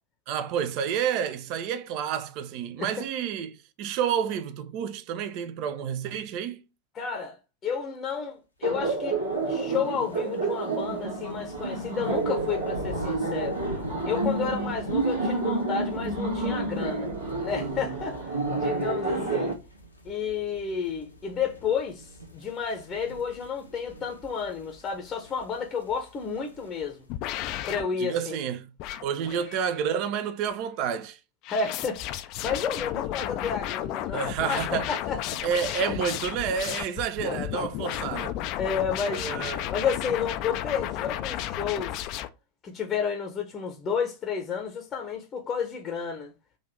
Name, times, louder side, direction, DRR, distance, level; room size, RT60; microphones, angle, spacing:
voice 1, 0.3-6.6 28.0-28.7 29.0-31.2 34.1-34.9 35.4-38.4 39.1-39.7, right 8 dB, 45° right, 0.5 m, -30 dB
voice 2, 6.9-7.4 7.6-13.6 14.1-17.1 17.4-19.5 20.0-27.0 27.7-28.4 29.3-29.4 31.5-35.4 38.6-39.2 39.7-42.1 42.6-46.3, left 6 dB, 25° left, 0.7 m, -31 dB
Laughter, 8.6-19.5, right 3 dB, 70° right, 1.5 m, -29 dB
sound 1, 9.5-27.0, right 1 dB, 85° left, 0.9 m, -43 dB
sound 2, 27.1-27.8 28.8-29.8 31.4-42.3, left 13 dB, 40° left, 0.3 m, -33 dB
3.9 x 2.5 x 3.1 m
figure-of-eight pair, 90°, 0 cm